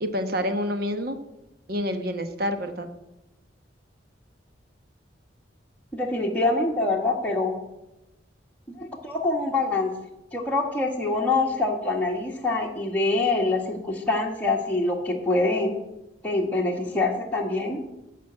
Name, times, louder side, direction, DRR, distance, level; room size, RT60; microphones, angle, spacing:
voice 1, 0.0-1.2 1.7-2.9, equal, 55° right, 8 dB, 1.0 m, -28 dB
voice 2, 5.9-7.5 8.8-9.9 10.3-15.7 16.2-17.8, left 2 dB, 10° left, -2 dB, 1.4 m, -25 dB
12.0 x 5.1 x 7.9 m, 0.93 s
head